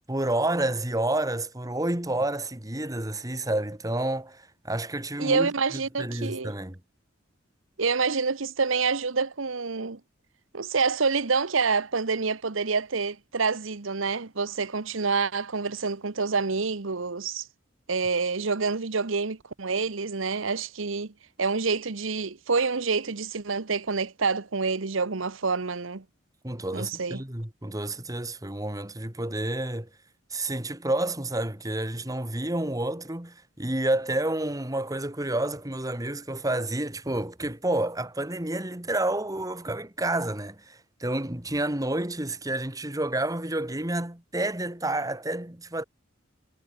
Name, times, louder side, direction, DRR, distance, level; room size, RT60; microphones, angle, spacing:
voice 1, 0.1-5.5 6.0-6.8 26.4-29.9 30.3-45.8, right 1 dB, 15° right, 2.1 m, -29 dB
voice 2, 5.2-6.5 7.8-10.0 10.5-17.5 17.9-21.1 21.4-26.0 26.7-27.2, right 4 dB, 75° right, 1.1 m, -27 dB
head